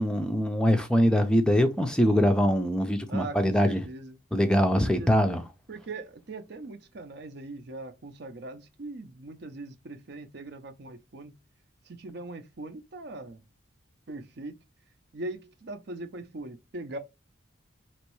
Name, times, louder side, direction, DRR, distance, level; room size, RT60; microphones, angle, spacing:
voice 1, 0.0-3.8 4.3-5.4, equal, 5° left, 0.4 m, -23 dB
voice 2, 3.1-4.2 4.7-5.1 5.7-11.4 11.8-13.4 14.1-14.6 15.1-17.0, right 2 dB, 55° right, 0.5 m, -40 dB
4.5 x 3.0 x 3.0 m
head